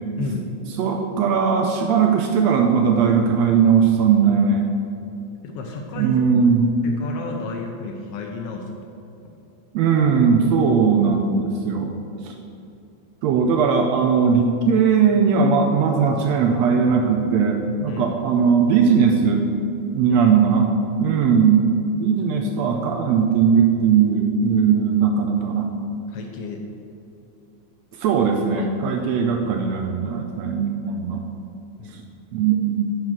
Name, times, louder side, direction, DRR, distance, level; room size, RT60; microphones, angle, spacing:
voice 1, 0.2-0.5 5.4-6.2 6.8-8.8 9.2-9.3 17.9-18.1 20.1-20.4 26.1-26.6 28.6-28.7 31.8-32.0, left 4 dB, 85° left, 2 dB, 1.3 m, -32 dB
voice 2, 0.8-4.7 6.0-6.8 9.7-11.9 12.2-12.4 13.2-19.4 19.9-20.7 21.0-21.7 22.0-25.7 28.0-31.2 31.9-32.0 32.3-32.8, right 6 dB, 80° right, 3 dB, 1.6 m, -19 dB
9.4 x 4.9 x 6.1 m, 2.6 s
omnidirectional pair, 3.6 m